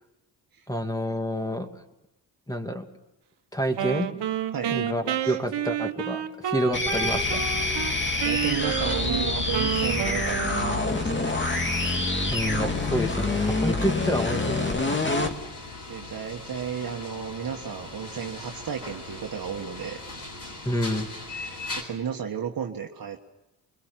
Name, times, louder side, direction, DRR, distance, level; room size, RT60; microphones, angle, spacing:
voice 1, 0.7-1.7 2.5-2.9 3.5-4.1 4.7-7.5 12.3-15.1 20.6-21.1, equal, 10° left, 5 dB, 2.7 m, -28 dB
Wind instrument woodwind instrument, 3.7-7.9 8.2-11.1, right 10 dB, 70° right, 1.5 m, -30 dB
sound 1, 6.7-15.4, left 2 dB, 25° left, 2.5 m, -26 dB
voice 2, 8.2-11.3 15.9-20.0 21.3-23.2, right 7 dB, 55° right, 2 dB, 1.6 m, -33 dB
sound 2, 10.4-21.8, left 2 dB, 50° left, 8.0 m, -40 dB
23.5 x 21.5 x 7.6 m, 0.94 s
cardioid pair, 65°, 42 cm